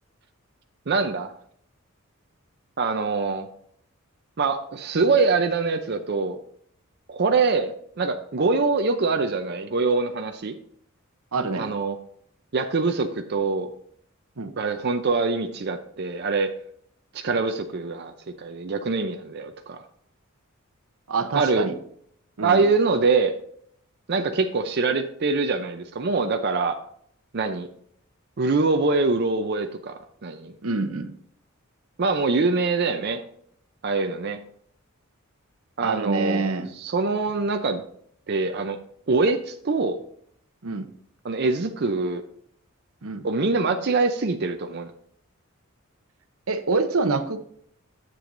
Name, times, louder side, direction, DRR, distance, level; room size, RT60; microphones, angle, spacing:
voice 1, 0.9-1.3 2.8-3.5 4.4-6.4 7.1-10.5 11.5-11.9 12.5-13.7 14.6-16.5 17.1-18.1 18.4-19.8 21.3-21.7 22.4-23.3 24.1-26.8 27.3-27.7 28.4-30.5 32.0-33.2 33.8-34.4 35.8-36.5 36.8-37.8 38.3-38.8 39.1-40.0 41.2-42.2 43.2-44.9, right 4 dB, 50° right, 5 dB, 0.6 m, -24 dB
voice 2, 11.3-11.7 14.4-14.5 21.1-21.7 22.4-22.6 30.6-31.1 35.8-36.7 40.6-40.9 43.0-43.3 46.5-47.4, right 3 dB, 80° right, 8 dB, 0.8 m, -26 dB
10.0 x 7.7 x 2.6 m, 0.65 s
head